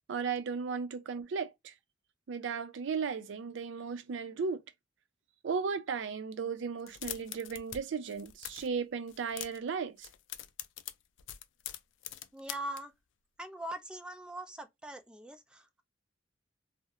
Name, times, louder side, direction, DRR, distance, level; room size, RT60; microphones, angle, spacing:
voice 1, 0.1-1.7 2.3-4.6 5.4-10.1, right 5 dB, 75° right, 0.4 m, -35 dB
sound 1, 6.8-7.8 8.1-8.7 9.1-9.7 10.0-12.8, left 12 dB, 75° left, 0.3 m, -43 dB
voice 2, 12.3-12.9 13.4-15.8, right 1 dB, 5° right, 0.3 m, -42 dB
2.4 x 2.0 x 2.7 m
head